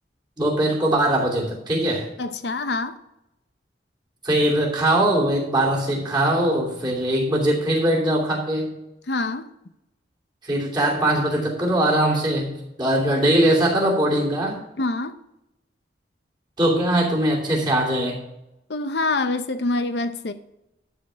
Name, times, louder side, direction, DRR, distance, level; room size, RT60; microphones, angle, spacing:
voice 1, 0.4-2.1 4.2-8.7 10.4-12.5 12.8-14.6 16.6-18.2, right 1 dB, 25° right, 2.8 m, -21 dB
voice 2, 2.2-3.0 9.1-9.5 14.8-15.2 18.7-20.3, left 2 dB, 65° left, 0.7 m, -25 dB
12.5 x 4.4 x 6.9 m
head